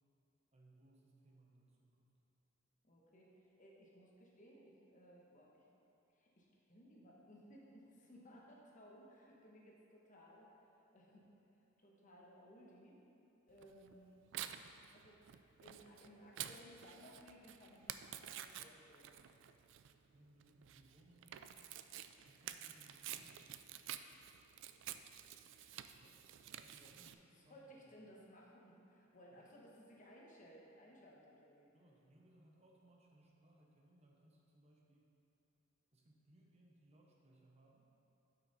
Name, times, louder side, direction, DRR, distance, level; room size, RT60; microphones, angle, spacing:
voice 1, 0.5-2.1 20.1-21.6 22.2-23.8 26.5-28.0 29.4-29.6 31.7-35.1 35.9-37.9, right 1 dB, 30° right, -1 dB, 0.8 m, -67 dB
voice 2, 2.8-5.7 6.1-10.5 10.9-13.0 13.5-14.2 14.9-15.2 15.6-19.2 26.0-26.1 26.8-31.7, equal, 40° left, -3 dB, 1.2 m, -61 dB
Tearing, 13.6-27.1, right 11 dB, 60° right, 0.3 m, -50 dB
9.0 x 5.8 x 4.1 m, 2.8 s
head